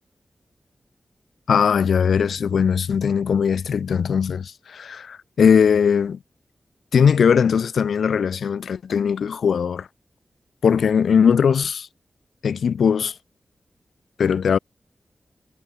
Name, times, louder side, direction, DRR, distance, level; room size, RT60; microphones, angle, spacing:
voice 1, 1.5-6.2 6.9-9.9 10.6-11.9 12.4-13.1 14.2-14.6, left 7 dB, 90° left, 1.7 m, -19 dB
cardioid pair, 60°, 0 cm